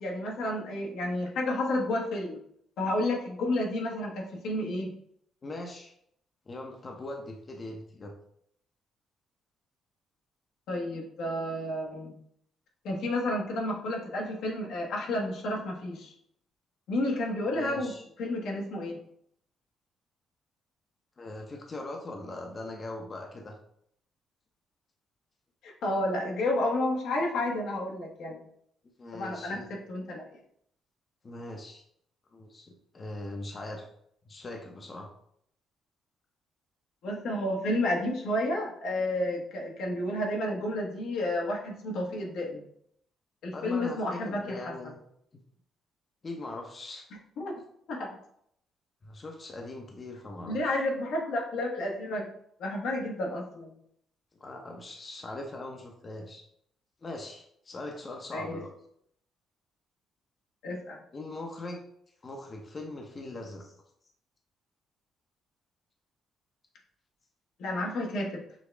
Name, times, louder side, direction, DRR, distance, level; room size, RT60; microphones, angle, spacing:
voice 1, 0.0-2.4 2.8-4.9 10.7-12.1 12.8-16.1 16.9-17.9 18.2-19.0 25.6-28.4 29.1-30.3 37.0-42.6 43.4-44.7 47.4-47.5 47.9-48.1 50.5-52.3 52.6-53.7 58.3-58.6 60.6-61.0 67.6-68.4, left 1 dB, 80° left, -1 dB, 1.1 m, -31 dB
voice 2, 5.4-5.9 6.5-8.1 17.5-18.0 21.2-23.6 29.0-29.7 31.2-31.8 32.3-33.9 34.3-35.1 43.5-45.0 46.2-47.1 49.0-50.8 54.4-56.4 57.0-58.7 61.1-61.8 62.2-63.7, left 2 dB, 35° left, 2 dB, 0.7 m, -41 dB
6.1 x 2.3 x 3.4 m, 0.70 s
cardioid pair, 90°, 0 cm